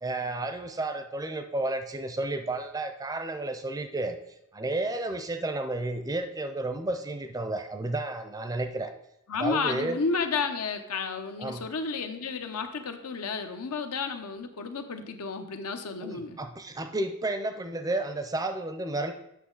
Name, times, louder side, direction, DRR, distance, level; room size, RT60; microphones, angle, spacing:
voice 1, 0.0-4.2 4.5-8.9 9.3-10.0 11.4-11.6 16.0-19.1, right 2 dB, 15° right, 8 dB, 0.4 m, -32 dB
voice 2, 9.3-16.4, left 4 dB, 85° left, 6 dB, 0.8 m, -32 dB
8.5 x 6.1 x 3.9 m, 0.82 s
head